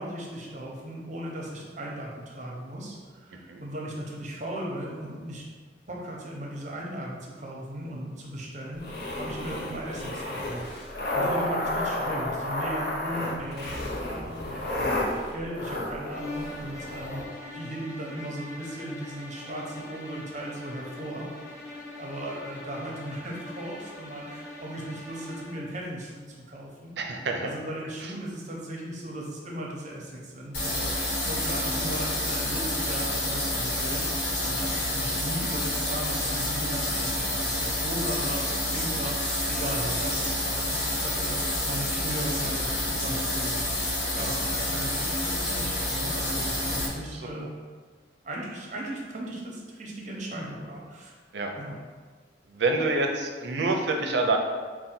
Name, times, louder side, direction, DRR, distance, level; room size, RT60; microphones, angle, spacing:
voice 1, 0.0-5.4 5.9-10.7 11.1-21.3 21.9-27.0 27.4-47.5 48.2-51.1 51.6-51.8, right 1 dB, 40° right, -2 dB, 0.7 m, -37 dB
sound 1, 8.7-17.2, left 1 dB, 60° left, 0.6 m, -31 dB
sound 2, 16.1-25.7, left 2 dB, 15° left, 0.6 m, -42 dB
voice 2, 27.0-27.5 46.7-46.8 51.3-51.5 52.6-54.4, right 3 dB, 70° right, 3 dB, 0.5 m, -26 dB
sound 3, 30.5-46.9, left 1 dB, 80° left, 1.0 m, -28 dB
3.9 x 2.2 x 4.3 m, 1.5 s
head